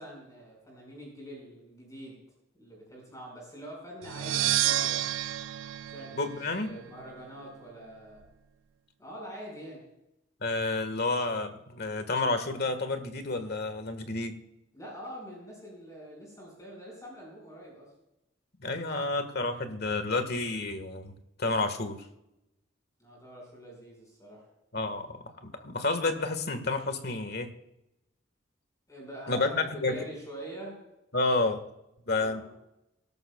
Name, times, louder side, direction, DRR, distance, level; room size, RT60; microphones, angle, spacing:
voice 1, 0.0-2.2 2.6-5.0 5.8-8.2 9.0-9.8 14.7-17.9 23.0-24.5 28.9-30.8 32.2-32.6, right 1 dB, 15° left, -2 dB, 5.4 m, -45 dB
sound 1, 4.0-6.9, right 13 dB, 75° right, 0.4 m, -30 dB
voice 2, 6.1-6.7 10.4-14.3 18.6-22.0 24.7-25.1 25.4-27.5 29.3-30.0 31.1-31.6 32.1-32.4, left 3 dB, 55° left, 8 dB, 1.6 m, -30 dB
24.5 x 12.5 x 2.3 m, 0.88 s
head